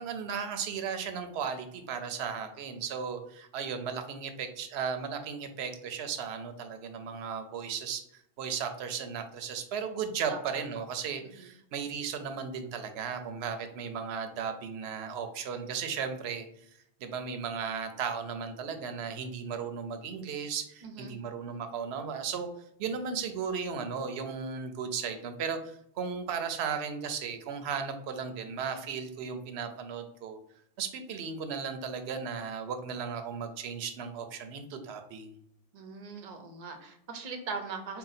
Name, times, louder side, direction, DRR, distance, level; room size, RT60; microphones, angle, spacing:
voice 1, 0.0-8.0 8.4-16.5 17.0-22.5 22.8-30.4 30.8-35.4, right 6 dB, 75° right, 7 dB, 0.8 m, -35 dB
voice 2, 11.2-11.5 20.8-21.2 35.7-38.0, right 4 dB, 45° right, 5 dB, 0.6 m, -40 dB
3.8 x 2.2 x 4.0 m, 0.73 s
omnidirectional pair, 1.1 m